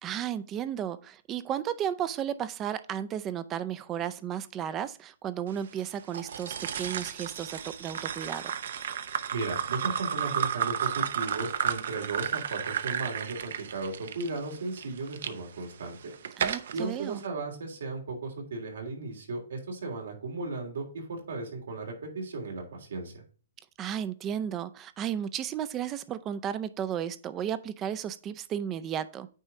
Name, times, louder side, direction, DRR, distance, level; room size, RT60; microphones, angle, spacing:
voice 1, 0.0-8.5 16.4-17.2 23.8-29.3, right 9 dB, 20° right, 0.4 m, -34 dB
sound 1, 6.1-15.3 15.9-16.8, right 8 dB, 65° right, 0.6 m, -32 dB
voice 2, 9.3-16.1 16.7-23.1, right 3 dB, 80° right, 3.2 m, -35 dB
9.0 x 4.3 x 3.7 m
hypercardioid pair, 160°, 0 cm